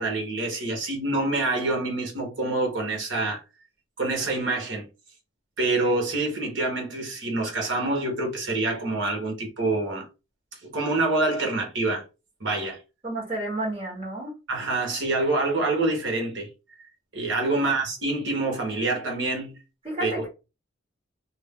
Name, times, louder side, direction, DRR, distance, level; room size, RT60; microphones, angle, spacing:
voice 1, 0.0-3.4 4.0-4.9 5.6-10.1 10.6-12.0 12.4-12.8 14.5-16.5 17.1-19.6 20.0-20.2, right 2 dB, 75° right, 1.2 m, -26 dB
voice 2, 13.0-14.3 17.4-17.7 19.8-20.3, right 1 dB, 30° right, 1.3 m, -31 dB
2.7 x 2.1 x 3.5 m
head